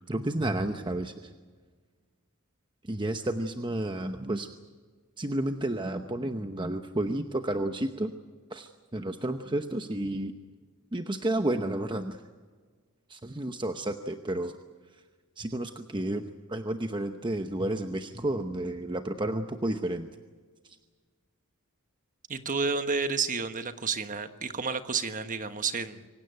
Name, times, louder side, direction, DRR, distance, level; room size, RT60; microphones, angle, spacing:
voice 1, 0.1-1.1 2.8-4.5 5.2-8.1 8.5-10.3 10.9-12.2 13.1-14.5 15.4-20.1, right 1 dB, 20° right, 7 dB, 0.9 m, -31 dB
voice 2, 22.3-26.1, right 5 dB, 35° right, 9 dB, 1.3 m, -30 dB
25.0 x 16.5 x 9.1 m, 1.5 s
head